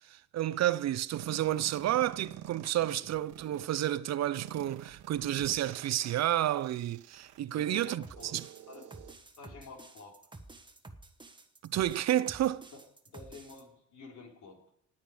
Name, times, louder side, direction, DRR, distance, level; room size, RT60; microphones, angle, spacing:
voice 1, 0.1-8.5 11.6-12.7, right 12 dB, 60° right, 0.6 m, -31 dB
sound 1, 1.1-3.7 4.4-9.1, right 11 dB, 80° right, 1.1 m, -48 dB
voice 2, 7.6-8.3 8.7-8.8 9.4-10.1 12.7-12.8 13.1-14.6, left 4 dB, 70° left, 3.9 m, -49 dB
sound 2, 8.0-13.6, right 2 dB, 15° right, 1.3 m, -51 dB
18.5 x 8.7 x 5.0 m
cardioid pair, 90°, 30 cm